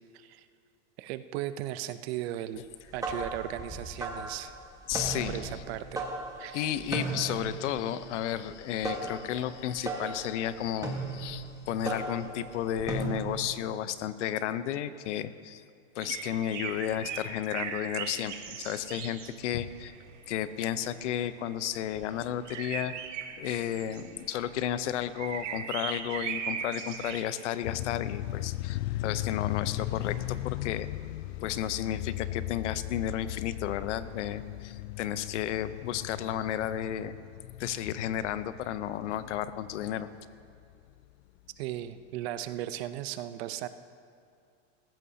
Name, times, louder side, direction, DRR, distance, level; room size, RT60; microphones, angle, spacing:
voice 1, 0.1-0.4 1.0-2.6 2.9-4.5 5.3-6.1 6.4-6.7 41.6-43.7, right 13 dB, 60° right, 12 dB, 0.8 m, -36 dB
sound 1, 2.7-13.5, right 3 dB, 10° right, 1.5 m, -37 dB
voice 2, 4.9-5.5 6.5-15.6 15.9-20.0 20.3-22.9 23.4-30.9 31.4-37.1 37.6-40.1, left 10 dB, 75° left, 13 dB, 0.8 m, -33 dB
sound 2, 16.0-27.3, right 8 dB, 90° right, 1.4 m, -39 dB
sound 3, 27.6-40.7, left 15 dB, 60° left, 0.4 m, -37 dB
19.0 x 15.0 x 2.8 m, 2.3 s
supercardioid pair, 140°, 36 cm